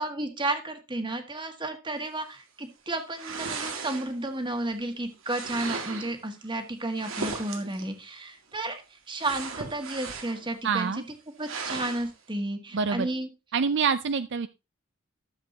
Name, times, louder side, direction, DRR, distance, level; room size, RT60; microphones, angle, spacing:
voice 1, 0.0-11.0 11.4-13.3, right 2 dB, 25° right, 6 dB, 1.7 m, -32 dB
sound 1, 3.1-4.3 5.2-6.2 6.9-7.9 9.2-10.5 10.8-10.9 11.4-12.1, right 4 dB, 80° right, 2.1 m, -36 dB
voice 2, 10.6-11.0 12.7-13.1 13.5-14.5, right 5 dB, 60° right, 12 dB, 0.5 m, -26 dB
12.5 x 7.5 x 2.8 m, 0.26 s
head